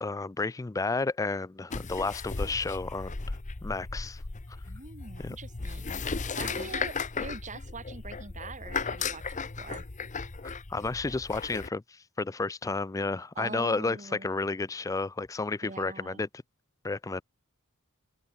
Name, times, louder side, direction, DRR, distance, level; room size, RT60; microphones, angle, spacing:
voice 1, 0.0-3.4 3.6-4.2 5.2-5.4 6.4-6.7 10.7-16.3 16.8-17.2, left 3 dB, 15° left, 0.3 m, -32 dB
sound 1, 1.7-11.7, left 4 dB, 35° left, 0.9 m, -36 dB
voice 2, 4.7-6.1 6.3-9.8 13.3-14.3 15.6-16.2, right 3 dB, 35° right, 3.2 m, -43 dB
open air
head